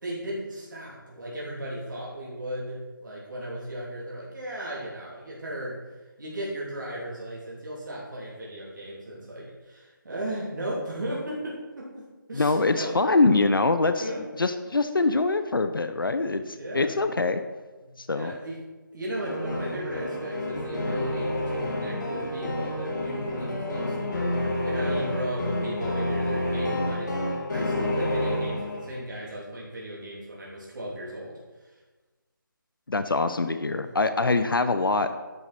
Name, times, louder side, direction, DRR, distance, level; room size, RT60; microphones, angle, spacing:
voice 1, 0.0-5.8 6.2-13.0 14.0-14.2 16.4-16.9 17.8-18.6 18.9-27.1 27.5-31.3 31.6-31.7 33.8-33.9, right 1 dB, 60° right, -5 dB, 3.0 m, -36 dB
voice 2, 12.3-17.4 18.0-18.3 32.9-35.1, left 3 dB, 80° left, 10 dB, 0.7 m, -24 dB
sound 1, 19.2-29.1, left 1 dB, 60° left, 2.3 m, -29 dB
10.5 x 6.7 x 4.3 m, 1.3 s
figure-of-eight pair, 155°, 11 cm